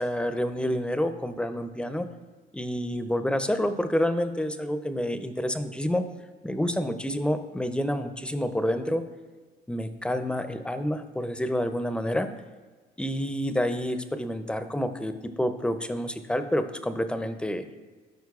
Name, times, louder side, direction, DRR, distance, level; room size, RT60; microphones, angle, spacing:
voice 1, 0.0-2.1 2.5-6.0 6.4-9.0 9.7-12.3 13.0-17.6, equal, 5° left, 9 dB, 0.4 m, -28 dB
13.0 x 4.4 x 2.4 m, 1.4 s
cardioid pair, 110°, 17 cm